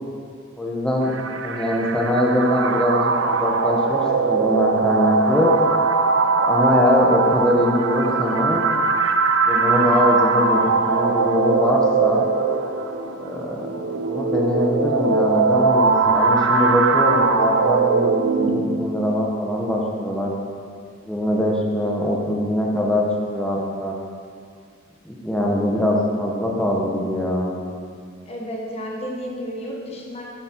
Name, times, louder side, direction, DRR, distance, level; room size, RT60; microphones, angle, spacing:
voice 1, 0.6-1.1 1.4-5.5 6.4-8.6 9.4-12.3 13.2-13.7 14.0-20.3 21.0-24.0 25.0-27.6, left 1 dB, 5° left, -2 dB, 1.0 m, -22 dB
sound 1, 1.0-19.0, right 4 dB, 75° right, 0.5 m, -21 dB
voice 2, 28.3-30.2, equal, 30° left, -2 dB, 1.2 m, -31 dB
8.3 x 7.7 x 4.6 m, 2.2 s
head